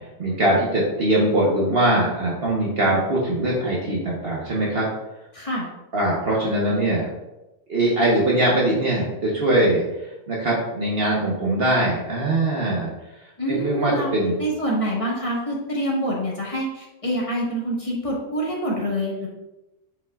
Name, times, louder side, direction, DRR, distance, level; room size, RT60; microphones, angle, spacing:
voice 1, 0.2-4.9 5.9-7.1 7.7-9.8 10.3-12.9 13.5-14.4, right 1 dB, 50° right, -4 dB, 1.3 m, -21 dB
voice 2, 5.3-5.7 13.4-14.1 14.4-19.3, equal, 25° left, -5 dB, 1.6 m, -26 dB
8.0 x 5.5 x 2.4 m, 0.98 s
omnidirectional pair, 1.3 m